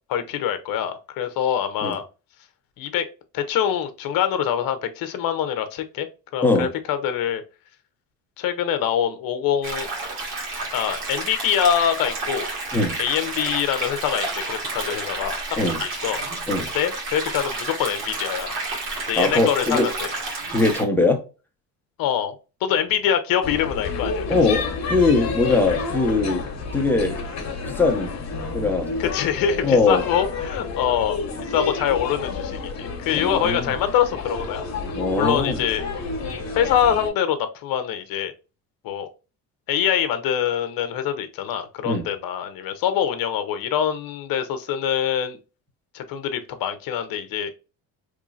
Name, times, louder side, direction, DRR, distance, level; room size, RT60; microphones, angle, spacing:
voice 1, 0.1-2.1 2.8-3.1 3.3-6.1 6.3-7.4 8.4-9.9 10.7-12.5 13.0-16.3 16.6-18.6 19.1-19.9 22.0-22.4 22.6-24.2 29.0-34.7 35.1-35.8 36.5-38.3 38.8-39.1 39.7-45.4 45.9-47.5, left 9 dB, 65° left, 0.8 m, -24 dB
sound 1, 9.6-20.8, right 3 dB, 75° right, 1.8 m, -30 dB
voice 2, 19.2-19.9 20.5-21.2 24.3-26.5 26.7-27.2 27.7-28.1 28.5-28.9 29.6-30.0 33.1-33.7 34.9-35.6 41.8-42.1, left 3 dB, 5° left, 1.0 m, -21 dB
sound 2, 23.4-37.1, left 4 dB, 45° left, 1.3 m, -30 dB
3.7 x 3.1 x 2.5 m
cardioid pair, 95°, 38 cm